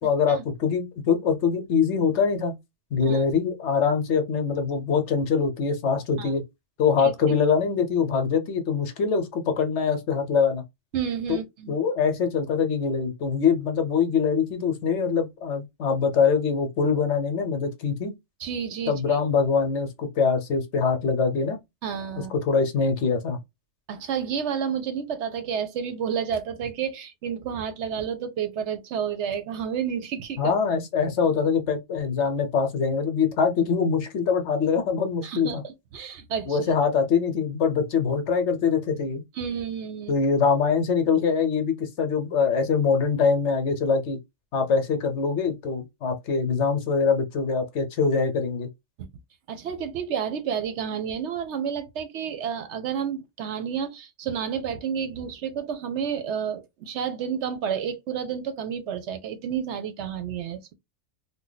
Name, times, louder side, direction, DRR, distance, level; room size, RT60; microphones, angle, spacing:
voice 1, 0.0-2.5 2.9-6.4 6.8-10.6 11.3-11.4 11.7-18.1 18.9-21.6 22.5-23.4 30.4-35.6 36.5-39.2 40.1-44.2 44.5-48.7, left 5 dB, 65° left, 1.0 m, -23 dB
voice 2, 10.9-11.8 18.4-19.2 21.8-22.3 23.9-30.5 35.2-36.6 39.3-40.1 49.0-49.1 49.5-60.7, right 7 dB, 70° right, 0.9 m, -30 dB
2.6 x 2.2 x 3.9 m
omnidirectional pair, 1.3 m